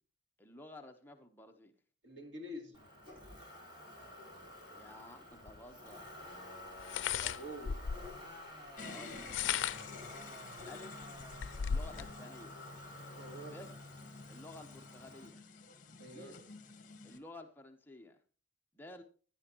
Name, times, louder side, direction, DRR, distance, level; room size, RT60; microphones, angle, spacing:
voice 1, 0.4-1.7 4.7-6.1 8.8-9.3 10.7-11.0 11.6-12.6 13.5-13.7 14.3-15.4 16.1-16.4 17.0-18.2 18.7-19.0, left 1 dB, 10° left, 1.0 m, -52 dB
voice 2, 2.0-2.8 7.2-7.8 13.2-13.6 16.0-16.4, equal, 85° right, 2.9 m, -47 dB
Motor vehicle (road), 2.7-15.3, left 1 dB, 25° right, 4.4 m, -51 dB
sound 1, 5.5-5.6 6.8-8.2 9.1-10.0 10.6-10.7 11.0-12.1, left 8 dB, 85° left, 0.4 m, -36 dB
sound 2, 8.8-17.2, left 4 dB, 45° left, 1.5 m, -51 dB
16.0 x 10.5 x 3.0 m
head